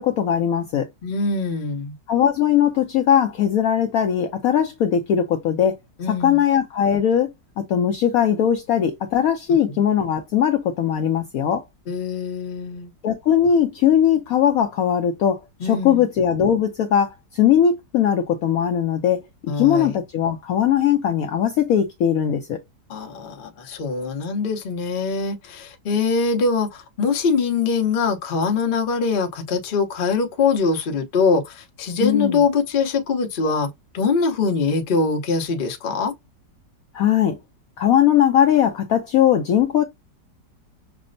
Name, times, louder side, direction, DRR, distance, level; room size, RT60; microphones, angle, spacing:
voice 1, 0.0-0.9 2.1-5.7 6.1-7.3 7.6-11.6 13.0-22.6 32.0-32.4 36.9-37.4 37.8-39.8, left 9 dB, 70° left, 0.8 m, -19 dB
voice 2, 1.0-1.9 6.0-6.4 9.7-9.8 11.9-12.9 15.6-16.0 19.5-19.9 22.9-33.7 33.9-36.1, left 4 dB, 50° left, 0.6 m, -23 dB
5.9 x 2.0 x 2.5 m
omnidirectional pair, 1.9 m